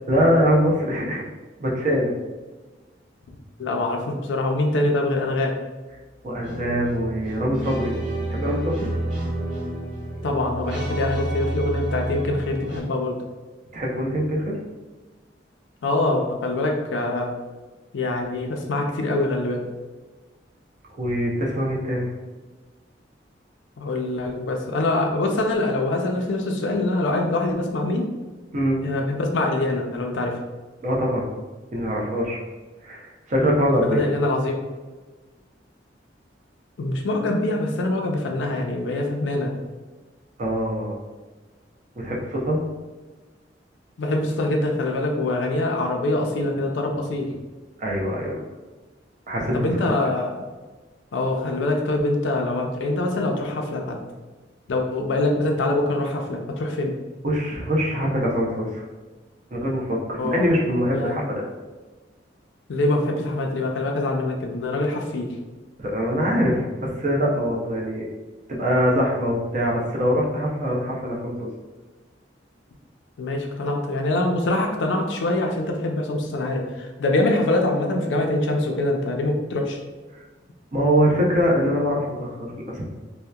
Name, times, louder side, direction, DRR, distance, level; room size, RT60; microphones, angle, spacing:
voice 1, 0.1-1.2 1.6-2.1 6.2-7.9 8.3-8.9 13.7-14.6 20.9-22.1 28.5-28.8 30.8-31.3 31.7-32.4 32.8-34.0 40.4-41.0 42.0-42.6 47.8-48.4 49.3-49.5 57.2-58.8 59.5-61.4 65.8-68.1 68.5-71.5 80.7-82.8, equal, 45° right, -3 dB, 0.5 m, -23 dB
voice 2, 3.6-5.5 10.2-13.2 15.8-17.3 17.9-19.7 23.8-28.1 28.8-30.4 33.8-34.6 36.8-39.5 44.0-47.3 49.5-50.4 51.1-54.0 54.7-57.0 60.2-60.4 60.9-61.2 62.7-65.3 73.2-79.8, left 2 dB, 85° left, 2 dB, 0.4 m, -24 dB
sound 1, 6.4-12.8, right 1 dB, 75° right, 1.0 m, -30 dB
2.7 x 2.1 x 2.2 m, 1.3 s
head